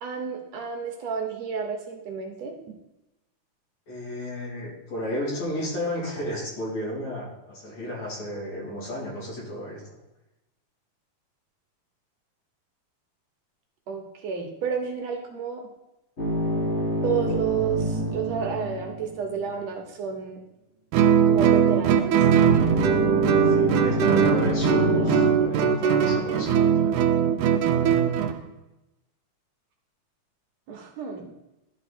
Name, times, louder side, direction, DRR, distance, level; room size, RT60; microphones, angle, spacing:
voice 1, 0.0-2.5 13.9-15.6 17.0-20.4 21.3-22.2 30.7-31.3, right 6 dB, 65° right, 2 dB, 2.2 m, -30 dB
voice 2, 3.9-9.8 23.4-27.0, left 1 dB, 65° left, -5 dB, 4.6 m, -33 dB
sound 1, 16.2-19.5 22.5-25.3, equal, 35° left, 1.2 m, -27 dB
Guitar, 20.9-28.4, right 8 dB, 80° right, 2.1 m, -20 dB
11.5 x 4.4 x 4.3 m, 0.93 s
omnidirectional pair, 3.4 m